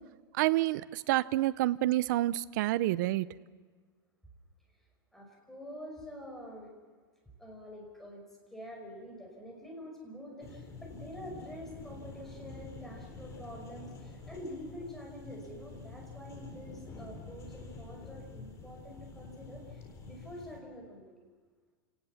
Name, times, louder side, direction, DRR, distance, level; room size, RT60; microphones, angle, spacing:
voice 1, 0.4-3.3, right 16 dB, 55° right, 16 dB, 0.7 m, -28 dB
voice 2, 5.1-6.7 7.4-8.2 8.5-21.2, equal, 5° left, 0 dB, 5.4 m, -46 dB
sound 1, 10.4-20.6, left 3 dB, 25° left, 4.1 m, -48 dB
29.0 x 19.0 x 7.3 m, 1.5 s
supercardioid pair, 155°, 12 cm